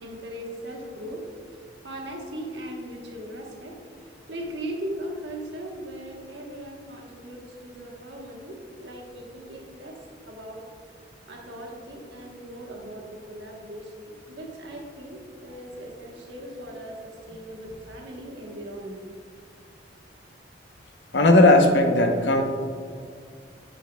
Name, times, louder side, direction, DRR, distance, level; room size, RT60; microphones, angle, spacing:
voice 1, 0.0-10.0 10.3-10.6 11.3-19.0, right 1 dB, 75° right, 0 dB, 1.2 m, -39 dB
voice 2, 21.1-22.4, left 2 dB, 75° left, 4 dB, 0.8 m, -17 dB
10.5 x 5.4 x 2.3 m, 2.2 s
head